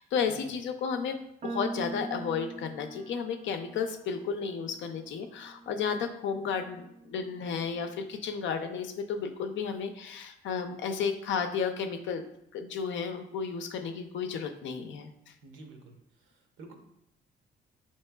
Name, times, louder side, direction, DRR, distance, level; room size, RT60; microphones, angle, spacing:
voice 1, 0.0-12.2 12.5-15.1, left 6 dB, 70° left, 6 dB, 0.5 m, -33 dB
sound 1, 1.4-7.8, right 3 dB, 35° right, 0.4 m, -44 dB
voice 2, 15.4-16.7, right 3 dB, 75° right, 3 dB, 0.8 m, -50 dB
5.3 x 3.0 x 2.2 m, 0.79 s
cardioid pair, 90°, 20 cm